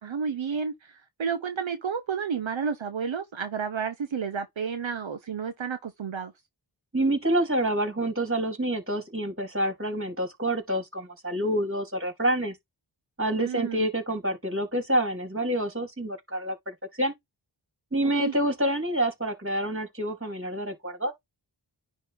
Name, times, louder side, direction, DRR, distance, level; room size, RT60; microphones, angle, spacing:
voice 1, 0.0-6.3 13.4-13.9 18.2-18.3, right 6 dB, 75° right, 1.0 m, -31 dB
voice 2, 6.9-12.6 13.2-17.1 17.9-21.1, right 1 dB, 25° right, 3.9 m, -27 dB
10.0 x 3.4 x 3.5 m
cardioid pair, 40°, 47 cm